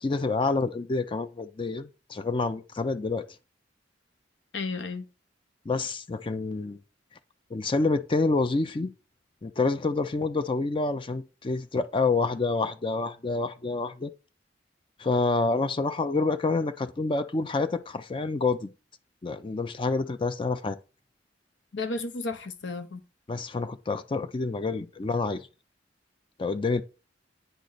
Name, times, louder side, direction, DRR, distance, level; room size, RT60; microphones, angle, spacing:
voice 1, 0.0-3.2 5.7-6.8 7.5-8.9 9.4-14.1 15.0-18.7 19.2-20.8 23.3-25.5 26.4-26.8, left 3 dB, 30° left, 0.4 m, -28 dB
voice 2, 4.5-5.0 21.7-23.0, left 3 dB, 85° left, 0.8 m, -33 dB
9.1 x 3.2 x 3.9 m
head